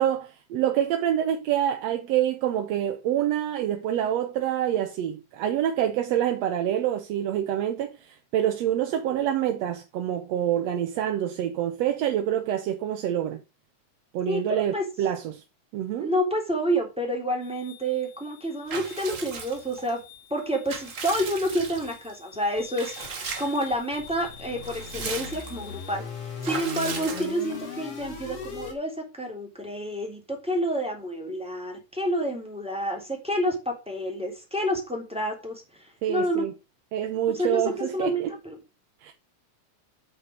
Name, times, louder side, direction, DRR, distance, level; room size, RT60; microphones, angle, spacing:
voice 1, 0.0-13.4 14.1-15.4 15.7-16.1 36.0-36.5 36.9-38.3 39.0-39.1, right 10 dB, 65° right, 1.9 m, -26 dB
voice 2, 14.3-14.9 16.0-20.0 20.3-36.4 37.3-38.6, equal, ahead, 3.0 m, -29 dB
sound 1, 17.4-28.7, left 6 dB, 50° left, 3.7 m, -41 dB
Water / Bathtub (filling or washing) / Liquid, 18.7-19.9 20.4-22.1 22.7-23.7 24.1-24.2 24.5-25.7 26.4-27.7, right 5 dB, 40° right, 1.1 m, -37 dB
8.5 x 7.6 x 4.9 m
omnidirectional pair, 3.6 m